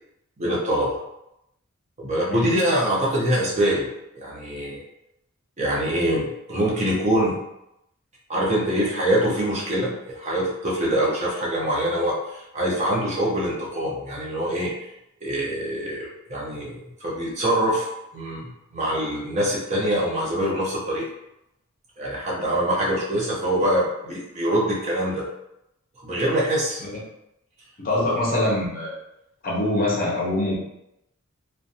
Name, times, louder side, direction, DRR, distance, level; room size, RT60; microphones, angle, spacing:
voice 1, 0.4-1.0 2.0-3.9 4.2-4.8 5.6-7.4 8.3-14.7 15.2-17.9 18.1-21.1 22.0-25.2 26.0-26.8, right 1 dB, 30° right, -5 dB, 0.6 m, -24 dB
voice 2, 27.8-28.9 29.4-30.6, left 1 dB, 40° left, -4 dB, 0.7 m, -24 dB
2.5 x 2.2 x 2.6 m, 0.83 s
head